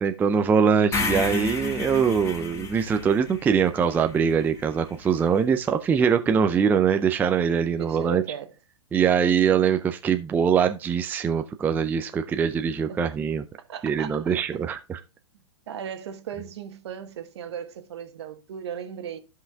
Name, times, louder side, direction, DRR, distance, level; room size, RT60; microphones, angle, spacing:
voice 1, 0.0-8.2 8.9-13.4 13.8-15.0, right 7 dB, 10° right, 0.4 m, -23 dB
sound 1, 0.9-5.1, left 4 dB, 20° left, 1.2 m, -32 dB
voice 2, 7.8-8.5 12.9-13.2 13.7-14.7 15.7-19.2, right 8 dB, 60° right, 1.2 m, -37 dB
14.0 x 5.6 x 2.3 m
hypercardioid pair, 115°, 16 cm